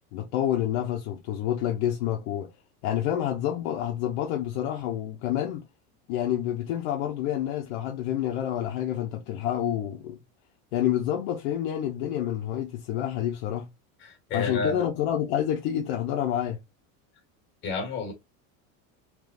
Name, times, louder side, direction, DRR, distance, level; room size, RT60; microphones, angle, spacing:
voice 1, 0.1-2.5 2.8-5.7 6.1-10.2 10.7-13.7 14.3-16.6, left 11 dB, 55° left, 0.7 m, -28 dB
voice 2, 14.0-14.8 17.6-18.1, left 4 dB, 25° left, 1.5 m, -30 dB
3.7 x 2.9 x 2.4 m
cardioid pair, 175°, 41 cm